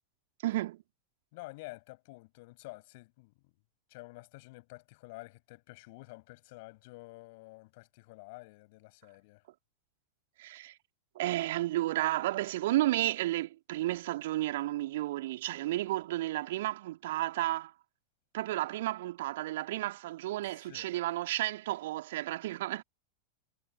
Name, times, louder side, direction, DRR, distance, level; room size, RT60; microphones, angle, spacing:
voice 1, 0.4-0.8 10.4-10.7 11.1-17.7 18.3-22.8, right 16 dB, 55° right, 2.5 m, -32 dB
voice 2, 1.3-3.5 3.9-9.4 20.5-21.0, left 24 dB, 50° left, 7.2 m, -50 dB
figure-of-eight pair, 90°, 0 cm